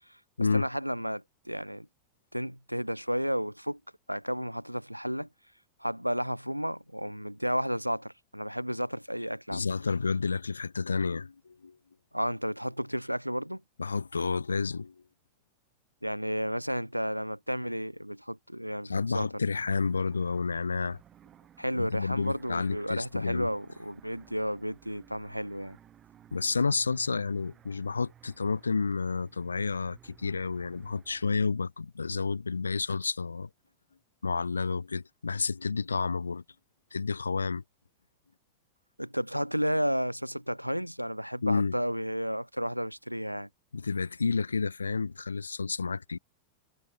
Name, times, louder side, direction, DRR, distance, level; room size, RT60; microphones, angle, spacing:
voice 1, 0.5-1.9 2.3-3.8 4.1-5.3 5.8-9.7 12.1-13.6 16.0-19.3 21.6-25.8 39.0-43.5, equal, 90° right, 2.7 m, -32 dB
voice 2, 9.5-11.8 13.8-14.9 18.8-21.0 21.7-23.5 26.3-33.5 34.2-36.4 36.9-37.6 41.4-41.7 43.7-46.2, left 4 dB, 75° left, 2.8 m, -30 dB
sound 1, 19.5-31.5, right 10 dB, 25° right, 6.1 m, -58 dB
figure-of-eight pair, 90°, 0 cm